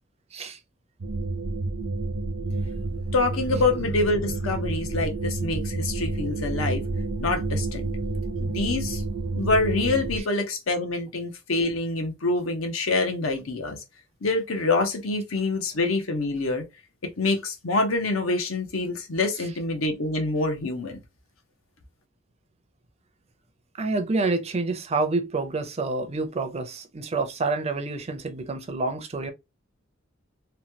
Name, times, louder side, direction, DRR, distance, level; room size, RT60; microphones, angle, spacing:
sound 1, 1.0-10.2, right 2 dB, 75° right, 0.7 m, -29 dB
voice 1, 3.1-6.8 7.2-7.9 8.4-9.0 9.3-13.8 14.2-16.6 17.0-21.0, left 3 dB, 85° left, 0.8 m, -26 dB
voice 2, 23.8-29.3, right 3 dB, 30° right, 0.5 m, -28 dB
3.0 x 2.2 x 2.7 m
head